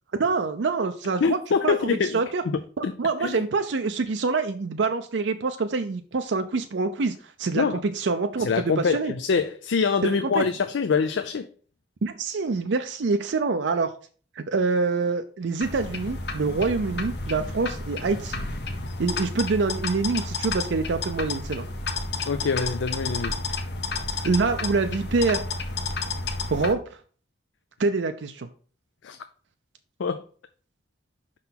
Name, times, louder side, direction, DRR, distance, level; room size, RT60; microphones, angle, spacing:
voice 1, 0.1-1.4 1.6-2.4 2.8-9.1 10.0-10.5 12.0-13.9 14.4-18.4 19.0-21.7 24.2-25.4 26.5-26.8 27.8-28.5, right 4 dB, 80° right, 0.5 m, -26 dB
voice 2, 1.2-2.2 2.5-2.9 3.2-3.4 7.5-7.8 8.4-11.5 22.3-23.4 29.0-29.2 30.0-30.2, left 5 dB, 90° left, 0.4 m, -25 dB
sound 1, 15.6-26.7, left 3 dB, 60° left, 0.9 m, -31 dB
5.6 x 3.8 x 5.8 m
head